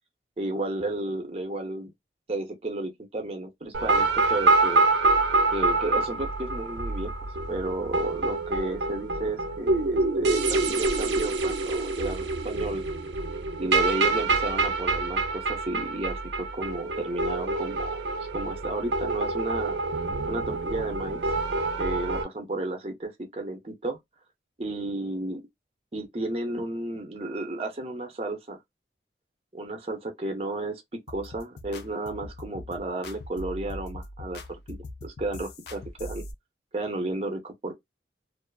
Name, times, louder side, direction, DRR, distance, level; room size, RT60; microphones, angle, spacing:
voice 1, 0.4-1.9 2.3-4.9 5.5-7.1 7.5-12.8 13.6-17.9 18.3-19.8 20.3-21.2 21.8-24.0 24.6-25.4 25.9-28.6 29.5-36.2 36.7-37.7, right 2 dB, 35° right, 0.5 m, -32 dB
sound 1, 3.7-22.2, right 3 dB, 90° right, 0.5 m, -26 dB
sound 2, 31.1-36.3, left 1 dB, 70° left, 0.4 m, -41 dB
2.4 x 2.3 x 2.2 m
head